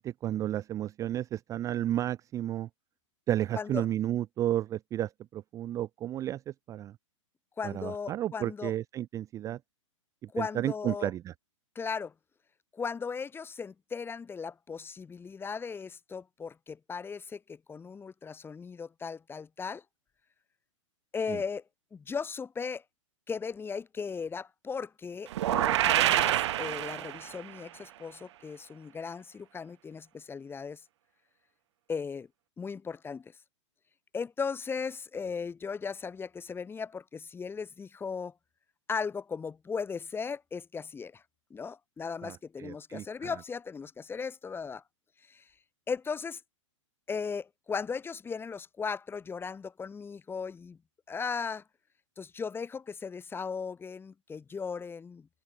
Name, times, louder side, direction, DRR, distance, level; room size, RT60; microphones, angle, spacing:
voice 1, 0.0-2.7 3.3-6.4 6.7-6.9 7.6-9.6 10.4-11.3 21.3-21.4 42.2-43.1, right 12 dB, 20° right, 0.4 m, -32 dB
voice 2, 3.5-3.9 7.6-8.7 10.3-11.1 11.7-12.1 12.7-19.8 21.1-21.6 21.9-22.8 23.3-30.8 31.9-32.3 32.6-33.4 34.1-38.3 38.9-41.2 41.5-44.8 45.3-45.5 45.9-46.4 47.1-50.8 51.1-51.6 52.2-55.3, left 5 dB, 15° left, 3.4 m, -37 dB
sound 1, 25.3-27.5, right 14 dB, 60° right, 1.6 m, -27 dB
hypercardioid pair, 125°, 16 cm